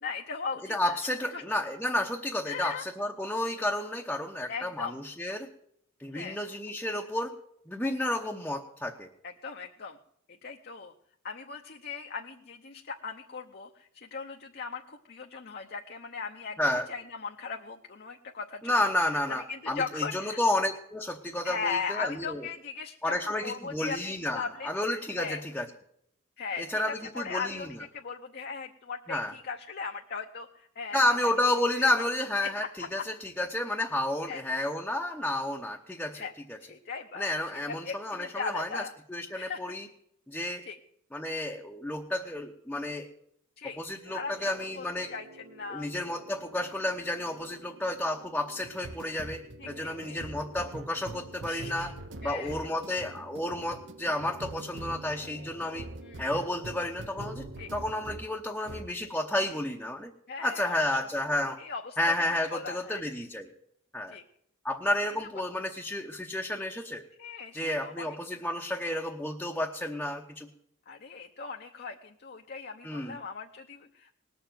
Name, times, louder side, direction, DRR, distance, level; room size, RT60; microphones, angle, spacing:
voice 1, 0.0-1.0 1.3-1.4 2.5-2.8 4.5-5.0 6.1-6.4 9.2-10.0 10.4-10.9 11.2-18.8 19.3-20.4 21.4-24.0 24.3-24.7 25.2-25.4 26.4-31.2 32.4-32.5 33.0-33.1 34.3-34.4 36.1-36.3 36.6-37.3 37.7-38.9 39.4-39.6 40.6-40.8 43.6-43.8 44.1-45.9 49.6-50.2 51.5-51.9 52.2-52.7 56.0-56.3 57.6-57.7 60.3-60.9 61.6-62.1 62.5-63.0 64.1-64.2 64.8-64.9 67.2-68.2 70.9-74.2, left 5 dB, 45° left, 2 dB, 0.9 m, -38 dB
voice 2, 0.7-5.5 6.0-7.3 7.7-9.1 16.6-16.9 18.6-22.4 23.0-25.7 26.6-27.7 29.1-29.3 30.9-36.6 37.1-38.8 39.1-39.9 40.3-40.6 41.1-43.1 43.6-45.1 45.7-51.9 52.2-55.9 56.2-60.1 60.4-61.6 62.0-63.5 63.9-64.2 64.6-67.1 67.5-70.5 72.8-73.2, left 1 dB, 5° left, 0 dB, 0.9 m, -31 dB
sound 1, 44.1-58.3 58.7-59.0, right 2 dB, 55° right, 0.9 m, -45 dB
19.5 x 7.0 x 9.2 m, 0.72 s
head